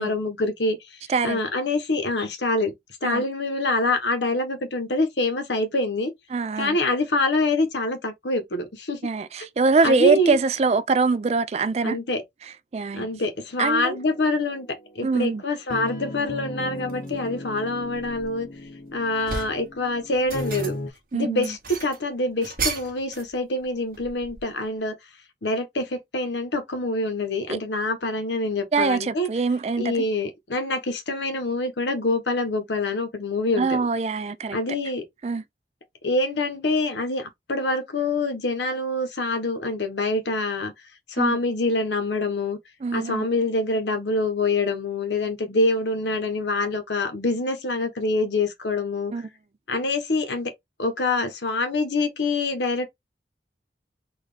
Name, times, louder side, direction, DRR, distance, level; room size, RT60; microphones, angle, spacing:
voice 1, 0.0-1.0 1.2-2.7 3.0-6.1 6.6-9.0 9.8-10.4 11.8-12.2 12.9-14.7 14.9-18.5 18.9-20.8 21.1-25.0 25.4-29.3 29.8-33.9 34.5-35.0 36.0-40.7 41.1-42.6 42.9-49.1 49.7-50.5 50.8-52.9, left 2 dB, 85° left, 1.0 m, -25 dB
voice 2, 1.1-1.4 3.0-3.2 6.3-6.8 9.0-12.0 12.7-13.1 13.6-14.0 15.0-15.4 21.1-21.5 27.5-27.6 28.7-29.9 33.6-34.6 35.2-35.4 41.2-41.4 42.8-43.2 49.1-49.3, right 4 dB, 35° right, 0.3 m, -23 dB
sound 1, 13.9-20.9, left 1 dB, 45° left, 0.7 m, -37 dB
sound 2, 16.9-17.1 17.7-18.7 19.0-19.7 20.1-21.0 21.4-23.3 23.6-24.6, right 5 dB, 50° right, 1.1 m, -34 dB
4.0 x 2.5 x 3.3 m
head